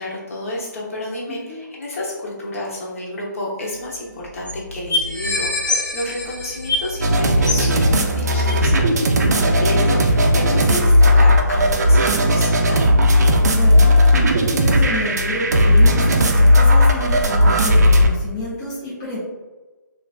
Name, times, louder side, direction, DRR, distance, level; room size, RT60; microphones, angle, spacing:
voice 1, 0.0-12.8, left 1 dB, 45° left, -4 dB, 0.9 m, -30 dB
voice 2, 1.3-1.6 13.5-19.2, left 1 dB, 15° left, -9 dB, 0.5 m, -29 dB
sound 1, 3.6-3.7 3.9-4.0 4.5-4.6 4.9-7.1 7.4-7.7 8.5-8.6, left 3 dB, 80° left, 0.7 m, -24 dB
sound 2, 3.7-16.9, equal, 10° right, 1.0 m, -36 dB
sound 3, 7.0-18.1, left 1 dB, 55° right, 0.4 m, -15 dB
3.1 x 2.5 x 2.3 m, 1.2 s
hypercardioid pair, 160°, 10 cm